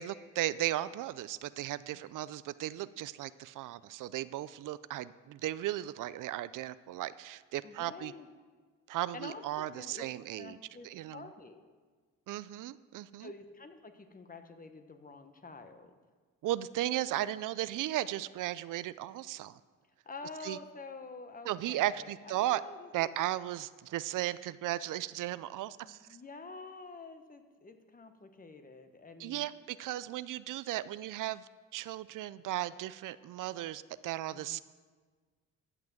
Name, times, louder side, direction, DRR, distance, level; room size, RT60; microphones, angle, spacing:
voice 1, 0.0-8.1 8.9-10.6 10.8-11.3 12.3-13.3 16.4-19.6 20.4-20.6 21.5-22.6 22.9-26.0 29.2-31.5 31.7-34.6, right 14 dB, 75° right, 16 dB, 0.5 m, -36 dB
voice 2, 7.6-8.3 9.1-10.1 10.4-11.7 13.2-15.9 20.0-23.1 25.8-29.6 34.3-34.6, left 3 dB, 25° left, 7 dB, 1.2 m, -48 dB
13.5 x 6.0 x 7.7 m, 1.4 s
cardioid pair, 100°, 32 cm